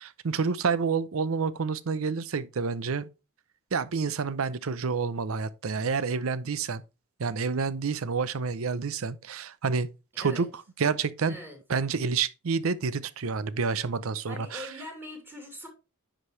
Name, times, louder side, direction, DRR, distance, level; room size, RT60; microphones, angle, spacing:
voice 1, 0.0-3.1 3.7-6.8 7.2-9.9 10.2-10.5 10.8-11.4 11.7-14.7, right 5 dB, 70° right, 0.6 m, -28 dB
voice 2, 10.1-10.5 11.2-11.6 14.2-15.7, left 1 dB, 10° right, 2.6 m, -42 dB
10.0 x 4.9 x 3.2 m
head